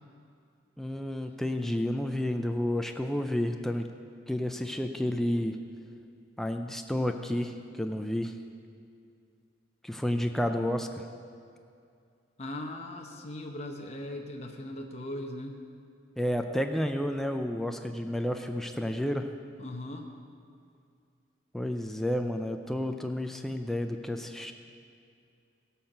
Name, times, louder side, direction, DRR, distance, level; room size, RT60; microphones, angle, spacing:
voice 1, 0.8-3.9 4.3-5.6 6.4-8.3 9.8-11.1 16.2-19.3 21.5-24.5, left 1 dB, ahead, 5 dB, 0.4 m, -31 dB
voice 2, 12.4-15.6 19.6-20.0, left 1 dB, 35° left, 2 dB, 0.8 m, -39 dB
16.5 x 5.7 x 6.6 m, 2.4 s
head